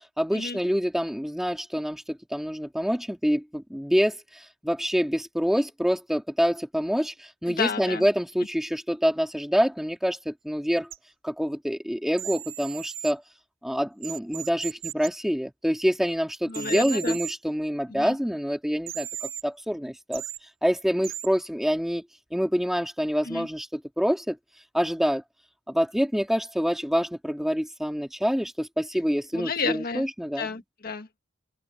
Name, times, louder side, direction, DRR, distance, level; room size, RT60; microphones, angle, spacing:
voice 1, 0.0-10.9 11.2-13.2 13.6-19.1 19.4-20.2 20.6-22.0 22.3-24.4 24.7-25.2 25.7-30.5, equal, ahead, 2.7 m, -26 dB
voice 2, 7.5-8.0 16.5-17.2 17.9-18.2 23.2-23.5 29.3-30.1 30.4-31.2, left 5 dB, 50° left, 1.5 m, -31 dB
sound 1, 10.9-11.0 12.2-13.1 14.0-15.1 16.5-17.3 18.9-19.4 20.1-20.4 21.0-21.3, right 12 dB, 75° right, 2.0 m, -36 dB
open air
head